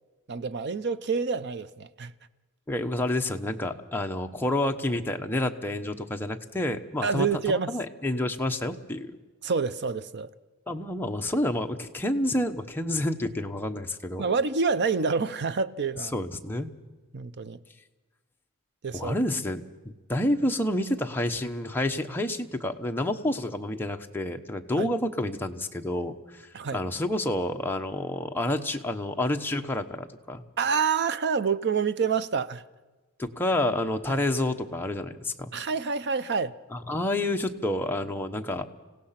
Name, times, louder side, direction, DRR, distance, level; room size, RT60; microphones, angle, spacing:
voice 1, 0.3-2.1 7.0-7.7 9.4-10.3 14.2-16.1 17.1-17.6 18.8-19.1 24.8-24.9 26.5-26.8 30.6-32.6 34.1-34.2 35.5-36.5, right 5 dB, 50° right, 0.6 m, -27 dB
voice 2, 2.7-9.2 10.7-14.2 16.0-16.7 18.9-30.4 33.2-35.5 36.7-38.7, left 1 dB, 10° left, 1.0 m, -29 dB
26.0 x 17.0 x 5.8 m
head